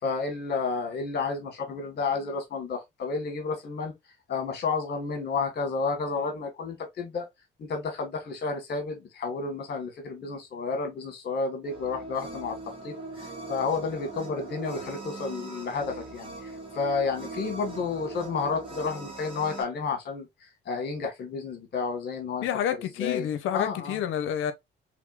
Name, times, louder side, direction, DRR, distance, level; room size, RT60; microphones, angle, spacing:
voice 1, 0.0-3.9 4.3-7.3 7.6-12.6 12.8-20.3 20.6-23.3 23.5-24.0, left 4 dB, 55° left, 1.6 m, -31 dB
sound 1, 11.6-19.6, right 3 dB, 25° right, 1.5 m, -40 dB
voice 2, 22.4-24.5, left 9 dB, 85° left, 0.6 m, -29 dB
3.5 x 3.2 x 2.4 m
cardioid pair, 90°, 20 cm